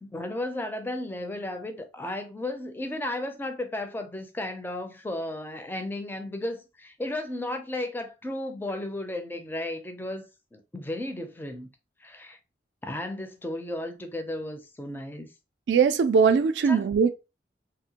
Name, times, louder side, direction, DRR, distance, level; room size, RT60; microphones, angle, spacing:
voice 1, 0.0-10.2 10.5-11.7 12.0-12.4 12.8-15.3 16.7-16.8, left 1 dB, 10° left, 0.4 m, -34 dB
voice 2, 15.7-17.1, right 6 dB, 75° right, 0.3 m, -20 dB
2.7 x 2.1 x 2.8 m
head